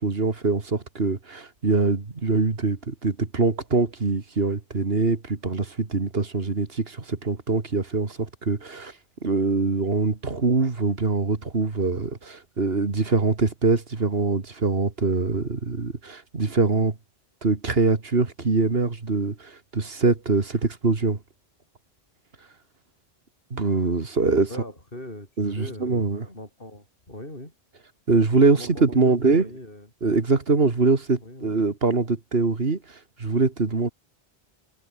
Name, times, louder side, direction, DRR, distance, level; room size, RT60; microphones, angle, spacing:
voice 1, 0.0-8.9 9.2-17.0 17.4-21.2 23.5-24.5 25.4-26.3 28.1-29.5 30.0-33.9, right 4 dB, 65° right, 2.3 m, -23 dB
voice 2, 24.5-27.5 28.5-29.9 31.2-31.5, left 1 dB, 55° left, 7.5 m, -41 dB
omnidirectional pair, 1.1 m